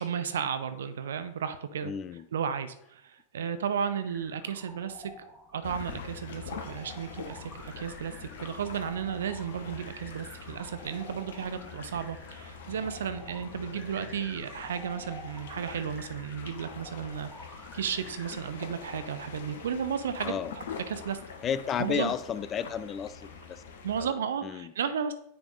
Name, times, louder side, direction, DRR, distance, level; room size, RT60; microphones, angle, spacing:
voice 1, 0.0-1.9 2.3-5.1 5.5-17.3 17.7-20.3 20.9-21.2 21.8-22.1 23.8-25.1, right 7 dB, 65° right, 12 dB, 0.6 m, -33 dB
voice 2, 1.8-2.2 20.2-20.5 21.4-23.6 24.0-24.2 24.4-24.7, left 8 dB, 25° left, 15 dB, 0.3 m, -32 dB
sound 1, 4.1-18.4, equal, 10° left, 1.6 m, -51 dB
sound 2, 5.6-24.0, left 6 dB, 60° left, 0.8 m, -44 dB
9.2 x 3.5 x 3.9 m, 0.72 s
figure-of-eight pair, 90°, 0 cm